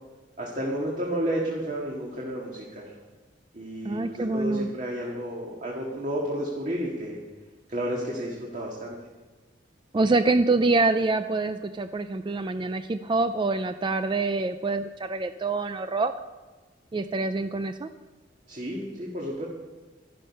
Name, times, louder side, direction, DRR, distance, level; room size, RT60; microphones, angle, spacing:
voice 1, 0.4-2.9 3.5-7.2 7.7-9.0 18.5-19.5, right 1 dB, 40° right, -3 dB, 1.9 m, -31 dB
voice 2, 3.8-4.7 9.9-16.1 16.9-17.9, right 3 dB, 25° right, 9 dB, 0.4 m, -25 dB
12.0 x 12.0 x 5.4 m, 1.3 s
head